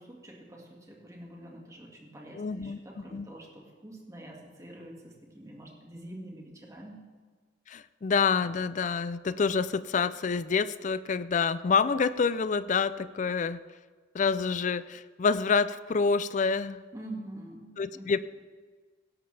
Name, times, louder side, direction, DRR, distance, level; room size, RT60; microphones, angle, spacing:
voice 1, 0.0-7.0 16.9-18.2, right 1 dB, 15° right, -1 dB, 1.9 m, -46 dB
voice 2, 2.3-3.3 7.7-13.6 14.1-16.8 17.8-18.2, left 5 dB, 40° left, 15 dB, 0.4 m, -27 dB
17.0 x 12.0 x 3.3 m, 1.5 s
head